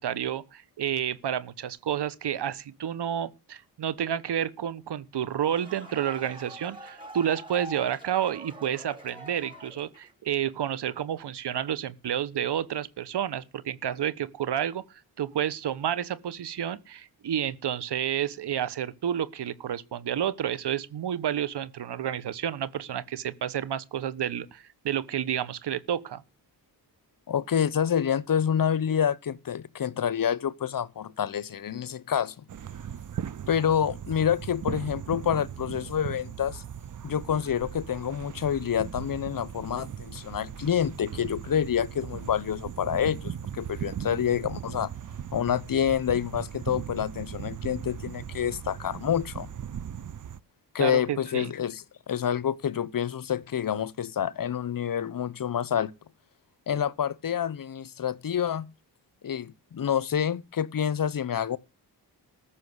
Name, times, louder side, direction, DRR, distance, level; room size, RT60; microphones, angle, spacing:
voice 1, 0.0-14.8 15.2-26.2 50.8-51.5, right 10 dB, 70° right, 1.3 m, -30 dB
sound 1, 5.2-10.2, right 1 dB, 10° right, 6.1 m, -44 dB
voice 2, 27.3-32.4 33.5-36.6 37.0-44.9 45.3-49.5 50.7-55.9 56.7-58.7 59.2-61.6, left 9 dB, 55° left, 0.9 m, -28 dB
sound 2, 32.5-50.4, right 9 dB, 45° right, 0.8 m, -38 dB
14.5 x 6.4 x 8.0 m
cardioid pair, 70°, 42 cm